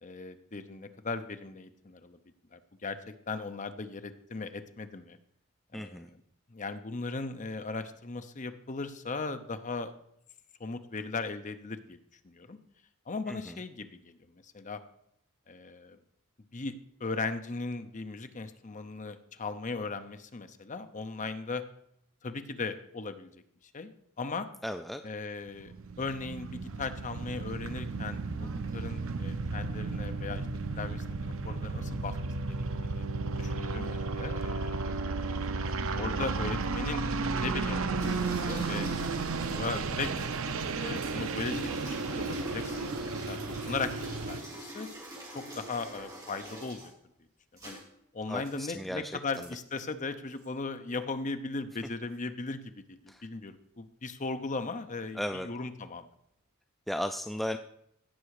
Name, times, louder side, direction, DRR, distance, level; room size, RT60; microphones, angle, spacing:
voice 1, 0.0-2.2 2.5-5.2 5.7-6.2 6.5-9.9 10.6-12.0 12.2-12.6 13.1-14.8 15.5-16.0 16.5-21.6 22.2-23.4 23.7-23.9 24.2-24.5 25.0-25.7 26.0-30.5 30.7-31.0 31.4-32.2 32.5-32.6 32.8-33.0 33.4-34.8 35.1-35.2 36.0-37.0 37.3-39.2 39.5-40.1 40.8-44.9 45.3-46.9 47.6-47.8 48.1-56.1, left 3 dB, 35° left, 9 dB, 0.7 m, -38 dB
voice 2, 5.7-6.1 13.3-13.4 24.6-25.0 48.3-49.2 53.1-53.2 55.2-55.5 56.9-57.6, equal, ahead, 7 dB, 0.3 m, -35 dB
sound 1, 25.6-44.4, right 3 dB, 65° right, 0.7 m, -33 dB
sound 2, 38.0-46.9 47.6-47.8 48.4-48.7 49.3-49.5 50.3-50.5, equal, 15° right, 2.9 m, -44 dB
16.5 x 6.1 x 4.8 m, 0.74 s
head